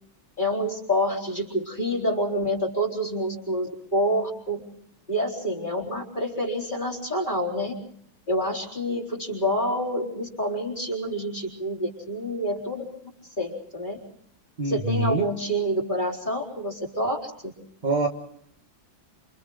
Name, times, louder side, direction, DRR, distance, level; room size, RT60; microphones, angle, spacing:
voice 1, 0.4-4.6 5.1-7.7 8.3-12.8 13.4-14.0 14.6-17.3, equal, 25° left, 0 dB, 4.2 m, -27 dB
voice 2, 14.6-15.2 17.8-18.1, right 2 dB, 25° right, 4 dB, 1.4 m, -24 dB
28.5 x 28.0 x 3.9 m, 0.70 s
omnidirectional pair, 2.2 m